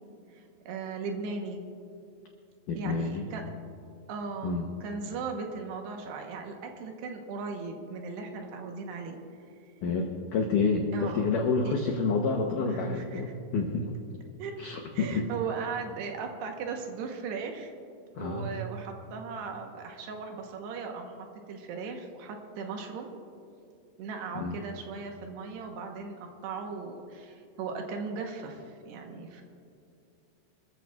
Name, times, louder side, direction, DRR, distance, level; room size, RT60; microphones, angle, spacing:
voice 1, 0.3-1.7 2.8-3.5 4.1-9.2 10.9-11.3 11.6-11.7 12.7-13.2 14.4-14.6 14.9-17.7 18.2-21.2 21.5-23.1 24.0-29.4, right 4 dB, 75° right, 3 dB, 3.0 m, -37 dB
voice 2, 2.7-3.3 4.4-4.7 9.8-14.0 14.6-15.2 18.2-18.5 24.4-24.6, left 4 dB, 90° left, 2 dB, 1.8 m, -29 dB
26.5 x 14.0 x 2.4 m, 2.5 s
omnidirectional pair, 5.1 m